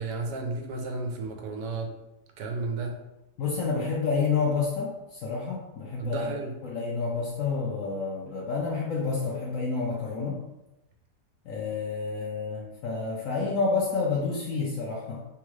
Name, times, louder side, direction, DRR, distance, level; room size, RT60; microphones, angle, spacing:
voice 1, 0.0-1.9 2.4-3.0 6.0-6.6, right 3 dB, 80° right, 3 dB, 1.2 m, -33 dB
voice 2, 3.4-10.4 11.5-15.2, left 4 dB, 70° left, -2 dB, 0.8 m, -29 dB
3.4 x 2.3 x 3.0 m, 0.95 s
omnidirectional pair, 1.8 m